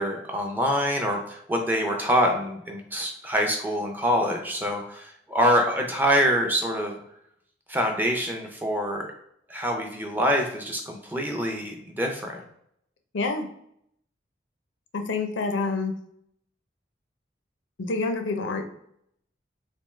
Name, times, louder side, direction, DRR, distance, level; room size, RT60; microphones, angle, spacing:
voice 1, 0.0-7.0 7.7-9.1 9.5-12.4, equal, 10° right, 2 dB, 0.5 m, -25 dB
voice 2, 13.1-13.5 14.9-15.9 17.8-18.6, left 3 dB, 85° left, 5 dB, 0.5 m, -27 dB
3.4 x 2.8 x 3.1 m, 0.73 s
head